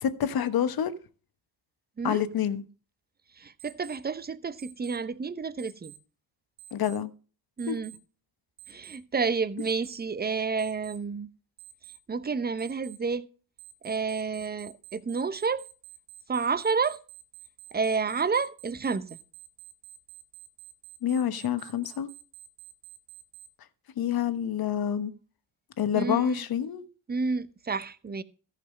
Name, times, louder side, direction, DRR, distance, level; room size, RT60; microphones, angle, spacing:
voice 1, 0.0-0.9 2.0-2.6 6.7-7.1 7.7-7.8 21.0-22.1 24.0-25.1 25.8-26.8, left 9 dB, 50° left, 1.2 m, -27 dB
voice 2, 3.4-5.9 7.6-7.9 8.7-11.3 12.1-13.3 13.8-15.6 16.3-17.0 17.7-19.1 25.9-26.4 27.1-28.2, right 5 dB, 20° right, 0.8 m, -30 dB
Alarm, 3.6-4.0 4.6-5.0 5.6-6.0 6.6-7.0 7.6-8.0 8.6-9.0 9.6-10.0 10.6-11.0 11.6-12.0 12.6-13.0 13.6-23.5, right 13 dB, 65° right, 2.2 m, -49 dB
14.0 x 5.8 x 5.3 m
hypercardioid pair, 60°, 48 cm